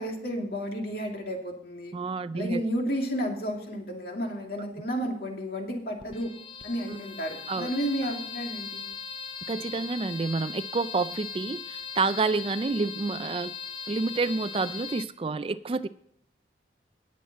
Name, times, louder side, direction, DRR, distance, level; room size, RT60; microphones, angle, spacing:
voice 1, 0.0-1.9 2.3-6.3 6.6-8.9, equal, 55° left, 1 dB, 2.5 m, -32 dB
voice 2, 1.9-2.6 6.9-7.0 7.5-7.7 9.5-13.5 13.9-15.9, right 3 dB, 30° right, 13 dB, 0.3 m, -29 dB
sound 1, 6.0-15.0, left 6 dB, 25° left, 0.8 m, -39 dB
18.5 x 7.3 x 4.2 m, 0.67 s
head